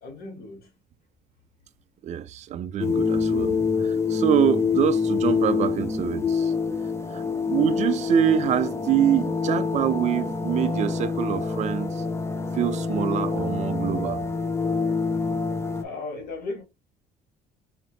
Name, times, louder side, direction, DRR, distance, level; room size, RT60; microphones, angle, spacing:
voice 1, 0.0-0.7 15.8-16.6, left 3 dB, 70° left, 1.7 m, -35 dB
voice 2, 2.0-6.5 7.1-7.2 7.5-12.0 12.5-14.2, right 10 dB, 45° right, 0.4 m, -25 dB
sound 1, 2.8-15.8, left 5 dB, 15° left, 0.5 m, -26 dB
4.2 x 2.9 x 2.7 m
cardioid pair, 110°, 17 cm